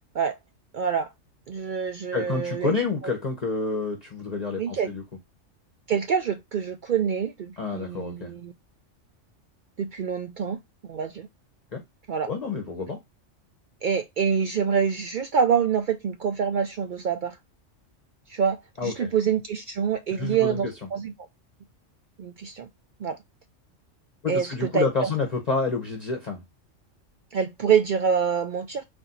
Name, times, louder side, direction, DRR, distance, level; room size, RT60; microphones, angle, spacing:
voice 1, 0.7-1.1 1.5-2.7 4.6-4.9 5.9-8.5 9.8-11.3 12.1-12.3 13.8-17.4 18.3-21.3 22.2-22.7 23.0-23.2 24.3-25.1 27.3-28.8, right 7 dB, 65° right, 0.5 m, -26 dB
voice 2, 2.1-5.0 7.6-8.3 11.7-11.8 12.3-13.0 18.8-19.1 20.1-20.7 24.2-26.4, left 4 dB, 35° left, 0.9 m, -28 dB
4.2 x 2.7 x 3.8 m
omnidirectional pair, 1.3 m